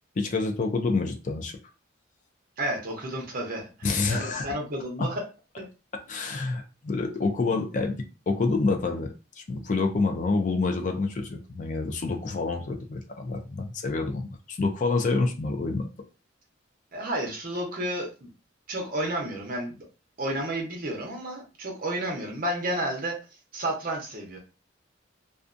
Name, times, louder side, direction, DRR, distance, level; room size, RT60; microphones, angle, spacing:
voice 1, 0.2-1.5 3.8-4.5 5.0-5.1 6.1-15.9, left 3 dB, 40° left, 4 dB, 0.4 m, -27 dB
voice 2, 2.6-5.2 5.6-5.7 16.9-18.3 18.7-19.7 20.2-23.2 23.5-24.4, right 1 dB, 45° right, 0 dB, 0.8 m, -31 dB
2.4 x 2.2 x 2.5 m, 0.32 s
head